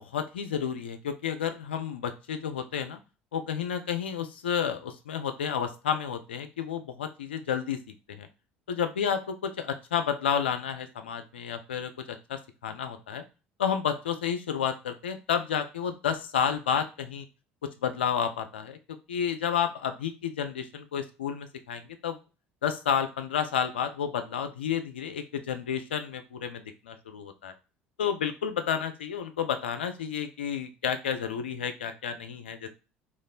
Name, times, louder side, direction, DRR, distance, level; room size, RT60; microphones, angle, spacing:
voice 1, 0.0-3.0 3.3-7.8 8.1-8.3 8.7-13.2 13.6-17.3 17.6-18.8 19.1-22.2 22.6-27.5 28.0-32.7, left 8 dB, 85° left, 9 dB, 0.4 m, -31 dB
3.1 x 2.4 x 3.8 m, 0.31 s
hypercardioid pair, 65°, 6 cm